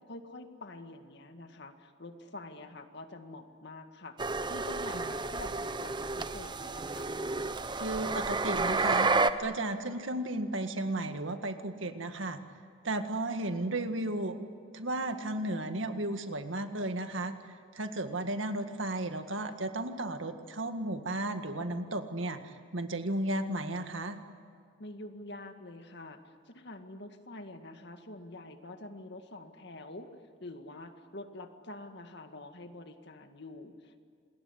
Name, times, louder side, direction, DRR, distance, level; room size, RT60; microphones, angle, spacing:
voice 1, 0.1-7.2 24.8-30.1 30.4-34.0, left 2 dB, 60° left, 6 dB, 2.0 m, -47 dB
sound 1, 4.2-9.3, right 3 dB, 25° right, 0.9 m, -31 dB
voice 2, 7.7-9.1 9.4-12.4 12.8-14.5 14.7-17.3 17.7-24.2, right 1 dB, 75° right, 7 dB, 1.9 m, -34 dB
27.5 x 21.0 x 9.9 m, 2.2 s
head